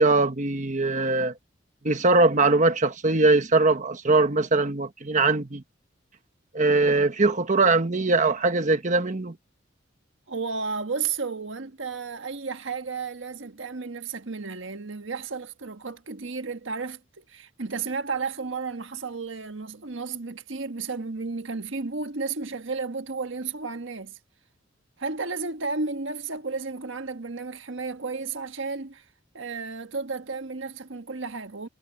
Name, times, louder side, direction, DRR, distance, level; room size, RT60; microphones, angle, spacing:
voice 1, 0.0-1.3 1.8-5.6 6.5-9.3, right 3 dB, 40° right, 1.3 m, -21 dB
voice 2, 10.3-24.2 25.0-29.0 29.3-31.7, right 4 dB, 90° right, 1.4 m, -33 dB
head